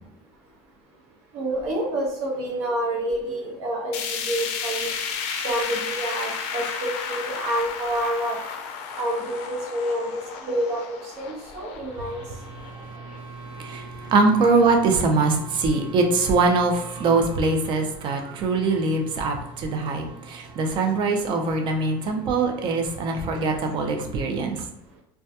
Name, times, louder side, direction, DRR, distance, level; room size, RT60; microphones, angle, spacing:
voice 1, 1.3-4.9 5.4-8.4 9.0-10.2 10.5-12.2, right 1 dB, 70° right, -1 dB, 0.8 m, -28 dB
sound 1, 3.9-14.1 14.5-14.6 15.0-15.1 15.9-16.0, left 6 dB, 60° left, 0.4 m, -33 dB
voice 2, 12.1-24.6, right 3 dB, 40° right, 4 dB, 0.4 m, -23 dB
2.2 x 2.1 x 2.7 m, 0.77 s
cardioid pair, 130°, 12 cm